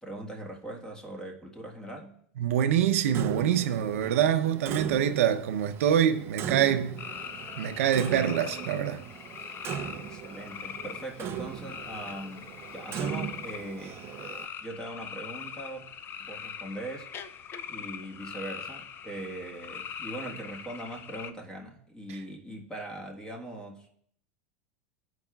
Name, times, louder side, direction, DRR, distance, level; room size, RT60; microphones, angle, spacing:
voice 1, 0.0-2.2 10.0-14.0 14.6-15.9 16.2-17.3 17.7-23.9, right 1 dB, 10° left, 1.3 m, -41 dB
voice 2, 2.4-7.0 7.6-9.0, right 9 dB, 80° right, 0.7 m, -25 dB
Clock, 3.1-14.5, right 9 dB, 35° right, 0.5 m, -39 dB
sound 1, 7.0-21.3, left 7 dB, 30° left, 0.4 m, -42 dB
14.5 x 4.8 x 2.3 m
supercardioid pair, 120°, 7 cm